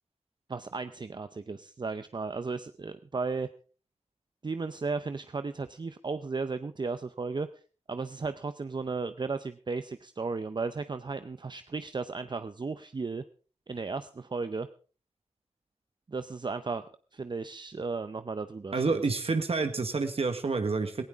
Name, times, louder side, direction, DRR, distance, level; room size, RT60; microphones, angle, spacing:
voice 1, 0.5-3.5 4.4-7.6 7.9-13.2 13.7-14.7 16.1-19.0, right 4 dB, 40° right, 11 dB, 0.7 m, -35 dB
voice 2, 18.7-21.0, right 4 dB, 60° right, 7 dB, 1.5 m, -28 dB
18.5 x 16.5 x 3.6 m, 0.38 s
wide cardioid pair, 100°, 11 cm